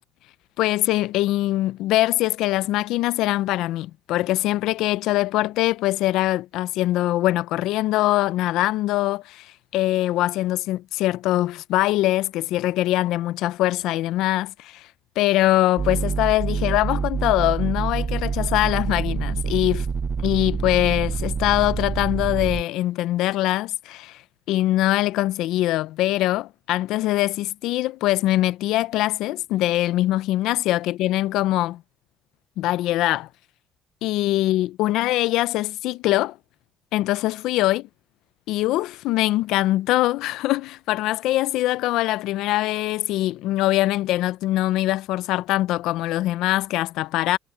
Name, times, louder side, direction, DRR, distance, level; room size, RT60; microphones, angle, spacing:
voice 1, 0.6-14.9 15.2-19.9 20.2-24.2 24.5-31.8 32.6-33.3 34.0-36.4 36.9-37.9 38.5-47.4, left 16 dB, 80° left, 0.5 m, -23 dB
sound 1, 15.8-22.6, right 5 dB, 35° right, 0.5 m, -26 dB
cardioid pair, 100°, 0 cm